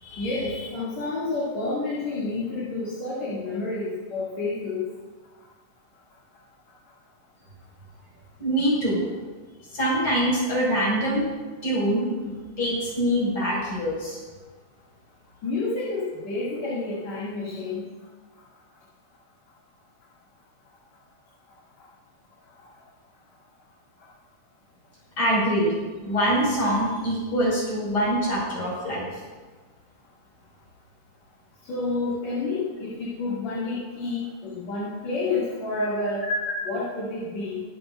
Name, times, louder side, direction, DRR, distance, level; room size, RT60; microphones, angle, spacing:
voice 1, 0.2-4.9 15.4-17.8 31.6-36.2 36.6-37.6, left 3 dB, 55° left, -7 dB, 3.5 m, -29 dB
voice 2, 8.4-9.1 9.7-11.2 11.6-14.2 25.2-25.8 26.0-29.1, equal, 35° left, -4 dB, 6.0 m, -24 dB
23.0 x 12.0 x 2.5 m, 1.3 s
omnidirectional pair, 3.9 m